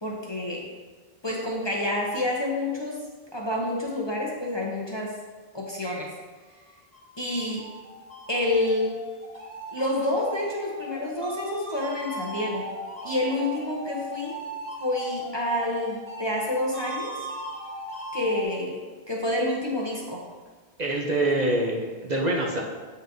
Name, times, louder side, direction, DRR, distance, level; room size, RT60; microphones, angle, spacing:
voice 1, 0.0-0.7 1.2-3.0 3.3-5.1 5.5-6.1 7.2-7.6 8.3-9.0 9.7-12.6 13.0-14.4 14.8-17.2 18.1-18.8 19.1-20.2, left 1 dB, 30° left, -3 dB, 0.7 m, -28 dB
sound 1, 6.7-18.4, right 1 dB, 10° right, 1.3 m, -38 dB
voice 2, 20.8-22.6, right 1 dB, 45° right, -1 dB, 0.7 m, -25 dB
7.3 x 5.5 x 2.6 m, 1.4 s
omnidirectional pair, 1.1 m